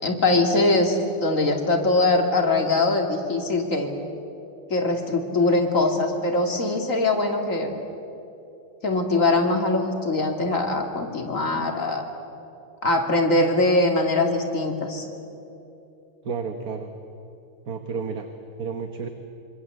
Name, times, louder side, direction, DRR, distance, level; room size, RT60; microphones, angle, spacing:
voice 1, 0.0-3.9 4.7-7.7 8.8-12.0 12.8-15.1, left 2 dB, 35° left, 3 dB, 2.9 m, -22 dB
voice 2, 16.2-16.9 17.7-18.3 18.6-19.1, right 5 dB, 50° right, 6 dB, 1.6 m, -31 dB
25.5 x 25.5 x 7.9 m, 2.9 s
omnidirectional pair, 2.4 m